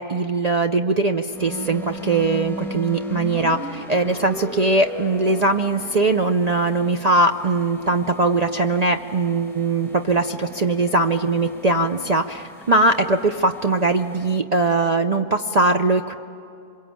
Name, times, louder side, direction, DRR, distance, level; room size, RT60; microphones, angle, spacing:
voice 1, 0.0-16.1, right 2 dB, 70° right, 6 dB, 0.3 m, -21 dB
sound 1, 1.3-14.4, right 1 dB, ahead, 1.2 m, -38 dB
26.0 x 23.0 x 8.7 m, 2.6 s
omnidirectional pair, 1.7 m